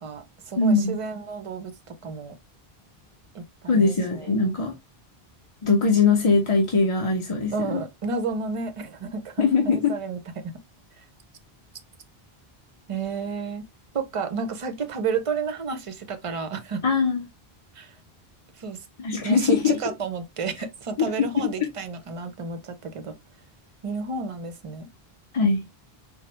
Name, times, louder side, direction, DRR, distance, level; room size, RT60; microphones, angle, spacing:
voice 1, 0.0-2.3 3.3-4.3 7.5-10.4 12.9-13.6 13.9-16.8 17.8-17.9 18.6-18.8 19.2-23.1 23.8-24.9, right 5 dB, 40° right, 0.6 m, -31 dB
voice 2, 0.6-1.0 3.7-4.7 5.6-7.8 9.4-10.0 16.8-17.3 19.0-19.8 21.4-21.5 25.3-25.6, left 4 dB, 35° left, 0.6 m, -21 dB
4.4 x 2.1 x 3.0 m
omnidirectional pair, 1.0 m